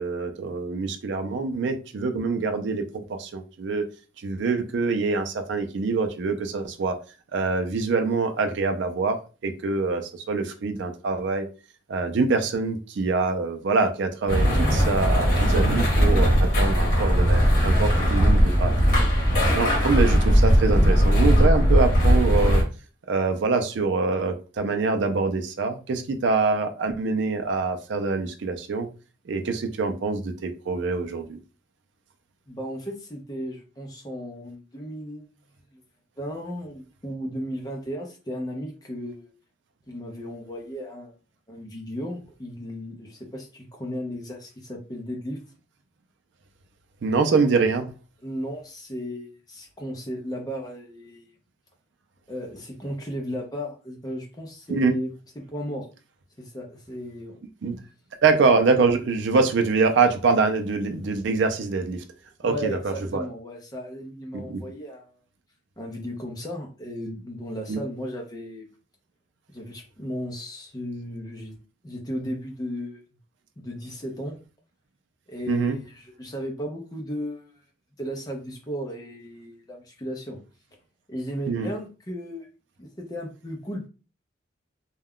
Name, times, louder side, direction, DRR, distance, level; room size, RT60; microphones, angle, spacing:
voice 1, 0.0-3.8 4.2-7.0 7.3-10.0 10.3-11.5 11.9-19.0 19.5-22.6 23.1-28.9 29.3-31.4 47.0-47.9 54.7-54.9 57.6-57.8 58.2-62.0 62.4-63.3 64.3-64.6 67.7-67.8 75.5-75.8 81.5-81.7, right 4 dB, 65° right, 6 dB, 0.4 m, -25 dB
sound 1, 14.3-22.6, equal, 45° left, 1.1 m, -19 dB
voice 2, 32.5-35.3 35.7-35.8 36.2-39.3 39.9-41.1 41.5-45.4 48.2-51.3 52.3-55.9 56.4-57.4 62.4-65.1 65.8-68.7 69.5-71.6 71.8-73.0 73.6-74.4 75.3-77.5 78.0-80.4 81.1-82.5 82.8-83.9, equal, 20° left, 1 dB, 0.5 m, -35 dB
2.3 x 2.2 x 3.5 m, 0.34 s
head